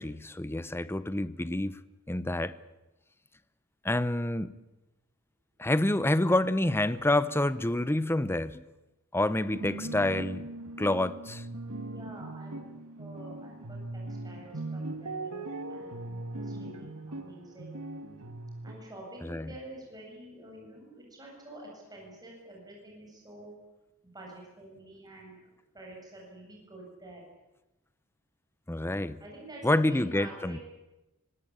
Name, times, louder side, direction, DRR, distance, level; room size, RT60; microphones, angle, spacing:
voice 1, 0.0-1.8 2.1-2.6 3.8-4.5 5.6-8.7 9.1-10.5 10.8-11.4 19.2-19.5 28.7-29.2 29.6-30.6, left 1 dB, 10° left, 0.8 m, -28 dB
sound 1, 9.5-18.7, right 2 dB, 90° right, 2.2 m, -39 dB
voice 2, 11.7-16.0 16.4-17.7 18.6-23.5 24.1-27.2 29.2-30.6, right 1 dB, 20° right, 7.9 m, -48 dB
25.5 x 18.0 x 8.8 m
head